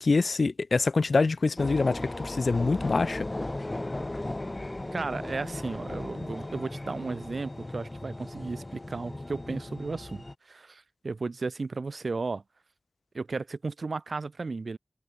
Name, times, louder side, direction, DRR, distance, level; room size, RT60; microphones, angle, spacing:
voice 1, 0.0-3.3, left 3 dB, 70° left, 1.9 m, -25 dB
sound 1, 1.6-10.3, left 2 dB, 30° left, 2.8 m, -36 dB
voice 2, 4.9-12.4 13.1-14.8, right 3 dB, 70° right, 2.4 m, -34 dB
wide cardioid pair, 80°, 0 cm